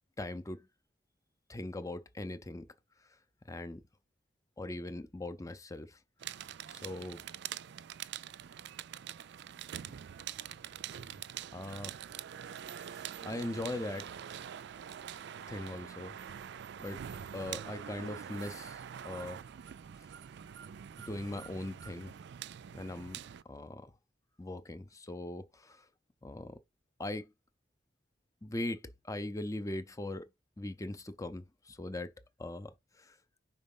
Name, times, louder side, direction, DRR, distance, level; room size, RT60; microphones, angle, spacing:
voice 1, 0.2-0.7 1.5-2.7 3.0-3.2 3.5-3.8 4.6-6.0 6.7-7.2 9.9-10.0 11.5-11.9 12.9-14.2 15.5-16.2 16.8-17.0 17.3-19.4 21.1-22.1 22.7-23.9 24.4-25.9 26.2-26.6 27.0-27.3 28.4-30.3 30.6-32.1 32.4-33.2, left 1 dB, 15° left, 0.6 m, -40 dB
sound 1, 6.2-23.4, right 9 dB, 65° right, 0.4 m, -45 dB
5.4 x 3.9 x 5.4 m
head